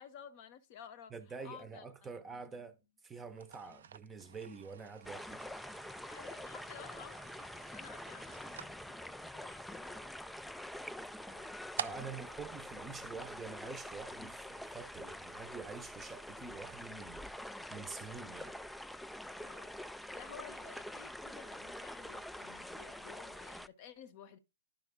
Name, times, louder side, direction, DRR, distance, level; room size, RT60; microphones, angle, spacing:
voice 1, 0.0-1.1 1.4-2.6 3.6-3.9 6.1-10.2 11.0-11.5 19.4-19.7 20.1-24.4, left 8 dB, 45° left, 0.9 m, -54 dB
voice 2, 1.1-2.8 3.0-5.4 11.7-17.3 17.7-18.5, right 4 dB, 15° right, 0.8 m, -47 dB
sound 1, 3.3-13.7, right 8 dB, 65° right, 0.4 m, -50 dB
sound 2, 5.0-23.7, left 1 dB, ahead, 0.3 m, -46 dB
10.5 x 5.5 x 3.6 m
hypercardioid pair, 125°, 0 cm